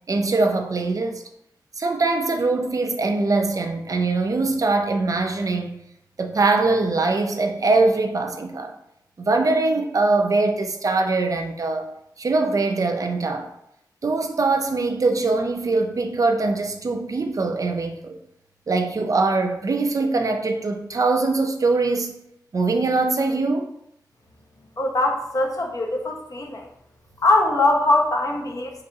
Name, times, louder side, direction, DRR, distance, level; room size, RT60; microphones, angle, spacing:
voice 1, 0.1-1.2 1.8-5.8 6.2-8.7 9.2-11.9 12.2-13.5 14.0-18.2 18.7-22.2 22.5-23.7, right 3 dB, 50° right, 0.5 m, -22 dB
voice 2, 24.8-26.6 27.2-28.7, left 2 dB, 50° left, 0.7 m, -21 dB
4.9 x 3.2 x 2.7 m
wide cardioid pair, 105°, 7 cm